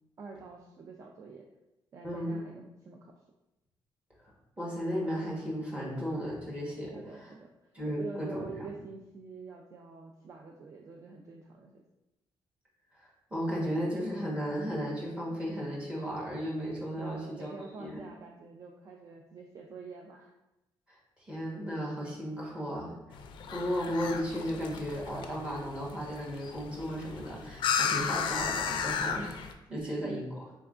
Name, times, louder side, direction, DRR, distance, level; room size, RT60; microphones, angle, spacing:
voice 1, 0.2-1.5 1.9-3.1 6.9-7.7 8.0-11.8 17.0-20.3 29.7-30.2, right 4 dB, 35° right, 1 dB, 0.3 m, -46 dB
voice 2, 2.0-2.4 4.6-7.0 7.7-8.7 13.0-17.5 17.8-18.0 20.9-23.2 23.5-29.4 29.7-30.4, equal, 15° right, -5 dB, 1.1 m, -35 dB
sound 1, 23.1-29.5, left 7 dB, 65° left, 0.3 m, -34 dB
4.2 x 3.4 x 2.4 m, 0.96 s
cardioid pair, 150°, 9 cm